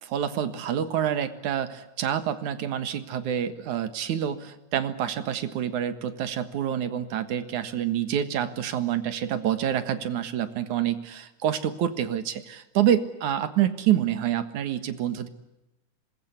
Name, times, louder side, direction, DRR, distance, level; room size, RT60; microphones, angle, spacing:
voice 1, 0.0-15.3, right 10 dB, 65° right, 11 dB, 2.9 m, -27 dB
26.0 x 21.5 x 9.8 m, 0.95 s
omnidirectional pair, 3.9 m